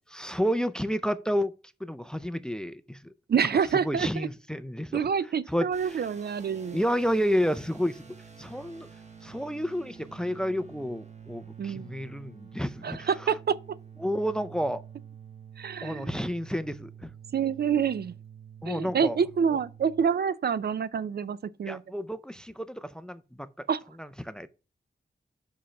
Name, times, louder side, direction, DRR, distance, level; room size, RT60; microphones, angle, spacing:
voice 1, 0.1-1.5 1.8-3.1 3.8-5.1 5.5-6.0 6.7-8.0 8.4-8.9 9.2-13.1 14.0-14.8 15.8-17.1 18.6-19.2 21.6-23.5 24.0-24.5, equal, 5° left, 0.4 m, -30 dB
voice 2, 3.3-4.3 4.9-6.8 11.6-11.9 12.8-13.6 15.6-16.1 17.3-18.1 18.7-21.8 23.7-23.8, right 7 dB, 60° right, 0.4 m, -27 dB
sound 1, 5.7-20.0, right 7 dB, 40° right, 1.2 m, -48 dB
5.6 x 5.1 x 5.8 m
wide cardioid pair, 130°, 18 cm